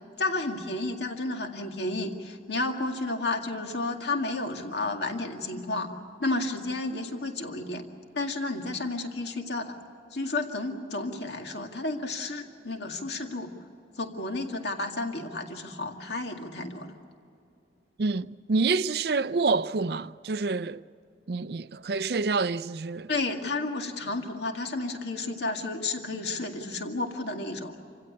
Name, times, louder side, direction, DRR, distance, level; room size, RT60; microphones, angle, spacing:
voice 1, 0.2-5.9 6.2-7.8 8.1-9.7 10.1-13.5 14.0-16.9 23.1-27.7, left 2 dB, 70° left, 2.1 m, -32 dB
voice 2, 18.0-20.8 21.3-23.1, right 4 dB, 60° right, 0.5 m, -27 dB
27.0 x 16.5 x 8.5 m
head